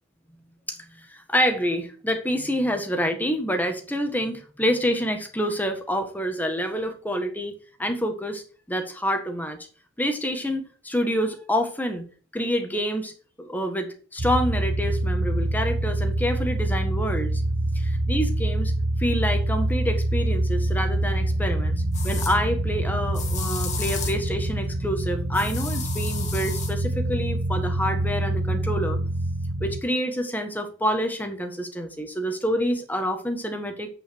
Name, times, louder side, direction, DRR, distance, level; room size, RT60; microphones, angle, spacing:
voice 1, 0.7-8.4 8.7-9.6 10.0-12.0 12.3-13.1 13.4-17.4 17.7-18.7 19.0-21.7 22.0-29.0 29.6-33.9, equal, 10° left, 5 dB, 1.4 m, -27 dB
sound 1, 14.2-29.8, right 1 dB, 85° right, 0.9 m, -26 dB
sound 2, 20.8-20.9 21.9-22.4 23.1-24.3 25.3-26.7, left 5 dB, 35° left, 1.6 m, -33 dB
8.4 x 5.9 x 4.6 m, 0.39 s
head